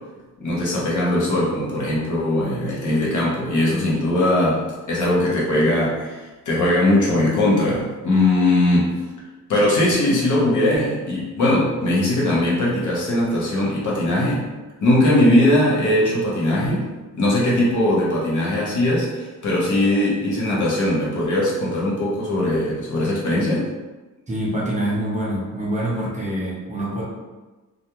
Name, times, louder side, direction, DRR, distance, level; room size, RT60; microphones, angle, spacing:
voice 1, 0.4-9.0 9.5-14.4 14.8-23.7, left 1 dB, 65° left, -5 dB, 0.9 m, -20 dB
voice 2, 24.3-27.0, right 1 dB, 20° right, -5 dB, 0.6 m, -25 dB
2.4 x 2.2 x 2.9 m, 1.2 s
wide cardioid pair, 145°, 32 cm